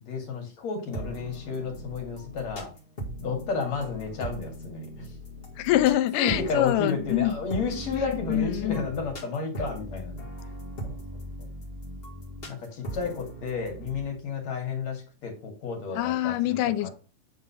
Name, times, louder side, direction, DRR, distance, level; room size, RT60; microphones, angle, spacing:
voice 1, 0.0-2.7 3.2-5.1 6.2-10.2 10.8-11.0 12.5-16.9, left 4 dB, 55° left, 3.2 m, -32 dB
sound 1, 0.9-14.1, right 1 dB, 30° left, 1.1 m, -39 dB
voice 2, 5.6-7.4 7.9-8.9 15.9-16.9, left 14 dB, 85° left, 2.2 m, -25 dB
9.2 x 3.8 x 5.7 m
omnidirectional pair, 3.7 m